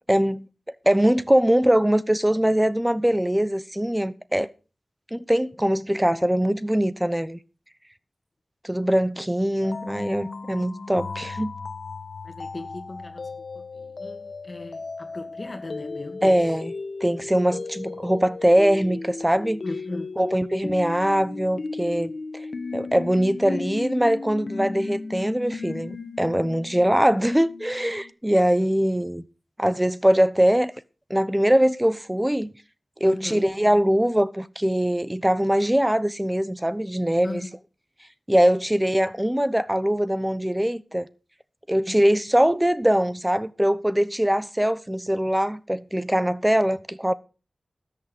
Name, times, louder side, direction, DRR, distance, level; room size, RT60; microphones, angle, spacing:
voice 1, 0.1-0.5 0.9-4.5 5.1-7.4 8.6-11.5 16.2-16.7 17.0-19.6 20.2-22.1 22.7-29.2 29.6-30.7 31.1-32.5 33.0-37.4 38.3-41.1 41.7-47.1, equal, 10° right, 0.9 m, -22 dB
sound 1, 9.6-28.1, left 3 dB, 80° left, 1.1 m, -36 dB
voice 2, 12.2-16.4 19.6-20.2 33.0-33.5 37.2-37.5 41.9-42.0, left 2 dB, 40° left, 2.4 m, -37 dB
13.5 x 8.6 x 5.1 m
wide cardioid pair, 50°, 0 cm